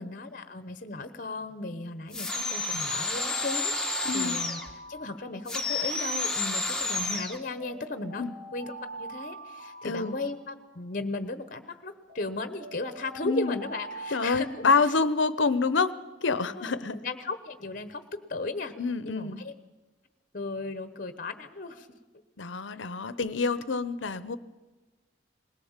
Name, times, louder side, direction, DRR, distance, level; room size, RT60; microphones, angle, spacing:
voice 1, 0.0-4.6 4.9-8.2 8.5-14.9 16.5-18.7 19.0-19.5 20.3-21.9, left 3 dB, 45° left, 10 dB, 1.1 m, -36 dB
sound 1, 2.1-4.7 5.5-7.4, left 3 dB, 5° left, 1.8 m, -30 dB
Alarm, 3.1-5.8 7.1-10.8 12.1-15.3, right 2 dB, 65° right, 7.0 m, -44 dB
voice 2, 4.0-4.4 8.2-8.3 9.8-10.2 13.2-13.6 14.1-15.9 16.2-17.0 18.8-19.4 22.4-24.4, left 4 dB, 80° left, 15 dB, 0.8 m, -27 dB
20.5 x 17.5 x 7.3 m, 1.2 s
head